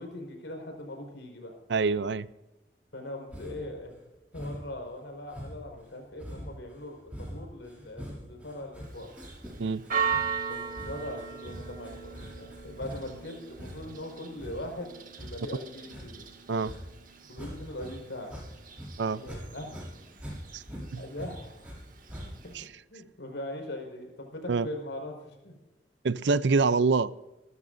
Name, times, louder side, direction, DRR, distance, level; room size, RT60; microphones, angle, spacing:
voice 1, 0.0-1.5 2.9-4.0 4.3-9.1 10.5-16.3 17.3-18.3 19.1-19.8 20.9-21.6 22.2-22.5 22.9-25.5, left 1 dB, 85° left, 3 dB, 5.0 m, -41 dB
voice 2, 1.7-2.3 9.6-9.8 16.5-16.7 19.0-19.2 20.5-20.6 20.9-21.0 22.5-22.7 24.5-24.7 26.0-27.1, right 4 dB, 75° right, 17 dB, 0.5 m, -25 dB
sound 1, 3.3-3.7 4.3-4.8 5.3-17.9 18.2-19.4 19.7-21.8 22.1-22.6, equal, 10° right, 6.6 m, -43 dB
Church bell, 8.8-22.7, right 6 dB, 50° right, 1.9 m, -39 dB
27.5 x 13.5 x 2.6 m, 1.0 s
head